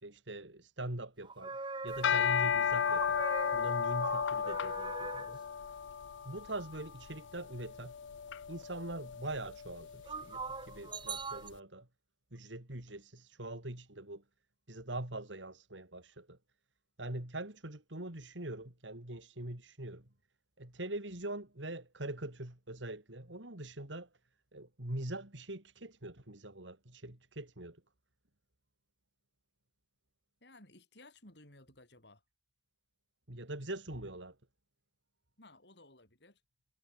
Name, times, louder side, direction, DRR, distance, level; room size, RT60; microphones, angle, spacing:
voice 1, 0.0-1.6 1.8-3.3 3.5-5.4 6.2-7.9 8.5-11.9 12.3-14.2 14.7-16.4 17.0-20.1 20.6-24.1 24.5-27.8 33.3-34.4, right 1 dB, 85° right, 3.9 m, -43 dB
sound 1, 1.2-2.4 2.9-5.3 10.1-11.5, right 4 dB, 25° right, 1.6 m, -41 dB
sound 2, 1.9-11.2, left 7 dB, 85° left, 0.5 m, -35 dB
voice 2, 30.4-32.2 35.4-36.4, left 2 dB, 65° left, 7.7 m, -58 dB
head